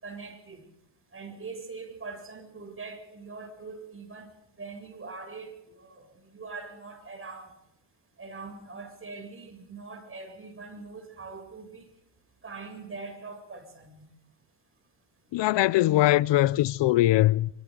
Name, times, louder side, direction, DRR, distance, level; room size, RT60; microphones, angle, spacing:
voice 1, 0.0-0.6 1.1-4.3 4.6-7.5 8.2-11.9 12.4-14.0, right 4 dB, 30° right, 7.7 m, -42 dB
voice 2, 15.3-17.5, left 16 dB, 70° left, 0.7 m, -21 dB
27.0 x 25.0 x 4.0 m
cardioid pair, 115°, 46 cm